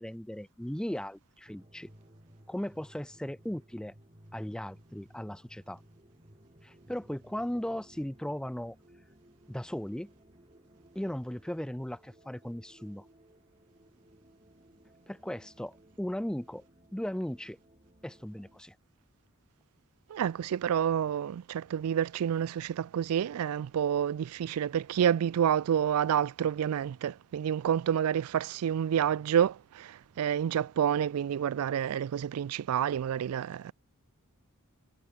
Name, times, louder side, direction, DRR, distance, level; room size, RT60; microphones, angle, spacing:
voice 1, 0.0-1.9 2.5-3.9 4.3-5.8 6.6-8.8 9.5-10.1 11.0-13.0 15.1-16.6 16.9-17.6 18.0-18.7, equal, 5° left, 0.4 m, -37 dB
sound 1, 1.5-18.6, right 1 dB, 25° right, 4.5 m, -59 dB
voice 2, 20.1-33.7, right 9 dB, 80° right, 0.3 m, -29 dB
head